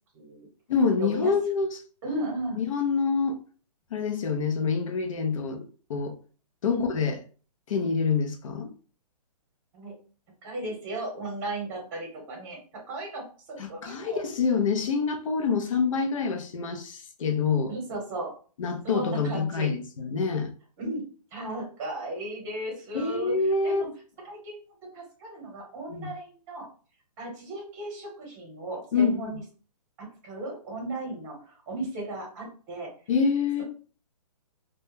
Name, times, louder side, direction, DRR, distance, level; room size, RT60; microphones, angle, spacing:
voice 1, 0.1-0.5 1.0-1.3 2.0-2.6 6.7-6.9 9.7-9.9 10.4-14.2 17.7-18.3 18.8-19.7 20.8-21.0 21.3-23.3 23.6-23.9 24.2-24.6 24.9-26.7 27.2-29.4 30.0-32.9 33.6-33.7, right 2 dB, 25° right, 1.0 m, -35 dB
voice 2, 0.7-1.8 2.6-3.4 3.9-5.6 5.9-6.1 6.6-7.2 7.7-8.7 13.6-17.7 18.6-20.5 22.9-23.8 25.9-26.1 28.9-29.3 33.1-33.6, left 5 dB, 55° left, 0.5 m, -26 dB
2.2 x 2.1 x 3.1 m
hypercardioid pair, 160°, 20 cm